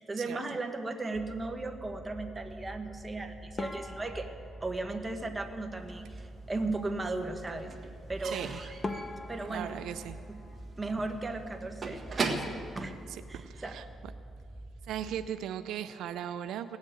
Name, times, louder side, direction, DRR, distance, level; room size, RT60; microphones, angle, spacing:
voice 1, 0.0-4.3 4.6-7.7 8.1-8.4 9.3-9.8 10.3-10.4 10.8-12.0 12.4-12.9 13.3-13.7, right 2 dB, 20° right, 5 dB, 1.4 m, -36 dB
sound 1, 1.1-15.3, right 1 dB, ahead, 0.4 m, -47 dB
sound 2, 3.6-6.0 8.3-8.4 8.8-11.6 11.9-12.6 12.9-13.1 13.4-13.5 14.2-14.5, left 2 dB, 30° left, 0.9 m, -43 dB
Slam / Squeak / Wood, 6.0-6.8 7.1-13.8, right 3 dB, 40° right, 1.6 m, -39 dB
voice 2, 8.2-8.6 9.5-10.2 13.3-13.9 14.8-16.8, right 10 dB, 80° right, 10 dB, 0.5 m, -38 dB
17.5 x 7.3 x 9.0 m, 2.4 s
cardioid pair, 90°, 0 cm